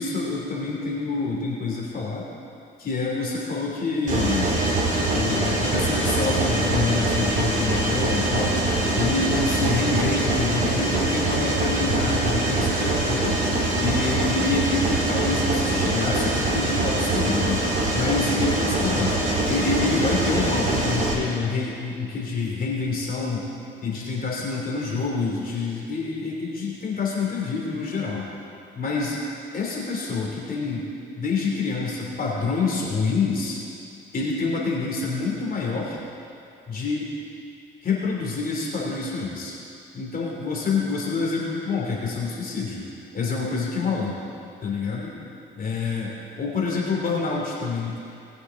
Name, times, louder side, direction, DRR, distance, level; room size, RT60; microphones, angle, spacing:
voice 1, 0.0-2.2 2.8-4.6 5.1-8.6 8.9-13.4 13.8-17.6 17.9-19.2 19.5-23.4 23.8-28.3 28.7-29.2 29.5-30.9 31.2-33.6 34.1-36.0 36.7-37.1 37.8-39.6 39.9-42.8 43.1-44.2 44.6-45.1 45.6-46.1 46.4-48.0, left 4 dB, 45° left, -3 dB, 3.0 m, -27 dB
Mechanisms, 4.1-21.1, right 2 dB, 40° right, 2.6 m, -23 dB
19.5 x 7.9 x 3.8 m, 2.6 s
cardioid pair, 90°, 20 cm